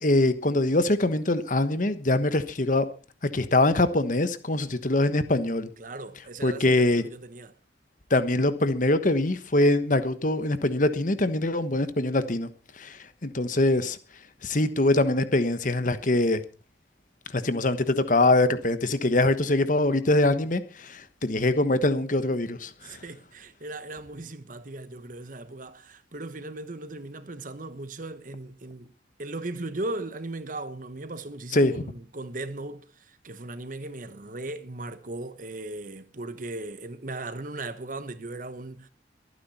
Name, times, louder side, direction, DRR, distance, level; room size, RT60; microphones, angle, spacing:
voice 1, 0.0-2.9 3.3-5.7 6.4-7.0 8.1-12.5 12.8-13.0 13.2-14.0 14.4-16.4 17.3-23.0 31.5-31.7, left 2 dB, 45° left, 1.2 m, -23 dB
voice 2, 5.8-7.5 22.8-28.9 29.2-38.9, right 2 dB, 45° right, 1.2 m, -37 dB
23.5 x 9.6 x 4.3 m
head